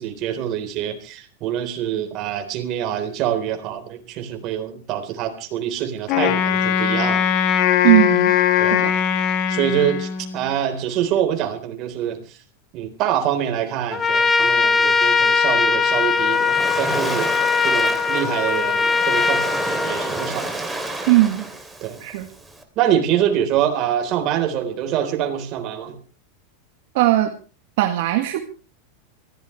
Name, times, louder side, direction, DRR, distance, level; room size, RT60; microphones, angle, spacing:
voice 1, 0.0-7.3 8.6-8.8 9.5-12.4 12.7-17.3 17.6-20.5 21.8-22.0 22.8-26.0, right 10 dB, 45° right, 6 dB, 3.9 m, -25 dB
Wind instrument woodwind instrument, 6.1-10.5, left 9 dB, 50° left, 2.4 m, -20 dB
voice 2, 7.8-8.4 8.7-8.9 21.1-21.5 22.0-22.3 26.9-27.3 27.8-28.4, right 15 dB, 65° right, 4 dB, 1.9 m, -18 dB
Trumpet, 13.9-20.4, left 4 dB, 20° left, 1.1 m, -20 dB
Waves surf, 15.8-22.6, right 2 dB, 5° right, 2.9 m, -30 dB
24.0 x 16.0 x 3.3 m, 0.36 s
supercardioid pair, 130°, 0 cm